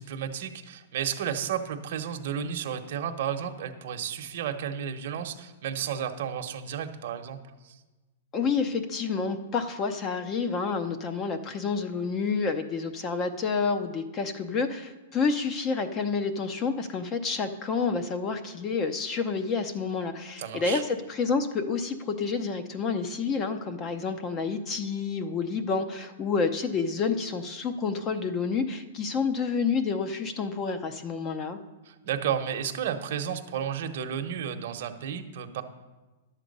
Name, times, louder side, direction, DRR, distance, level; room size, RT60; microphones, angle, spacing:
voice 1, 0.0-7.4 7.6-7.8 20.4-20.8 31.9-35.6, right 8 dB, 55° right, 6 dB, 1.0 m, -32 dB
voice 2, 8.3-31.6, left 5 dB, 25° left, 8 dB, 0.7 m, -29 dB
11.0 x 7.4 x 5.3 m, 1.2 s
hypercardioid pair, 155°, 0 cm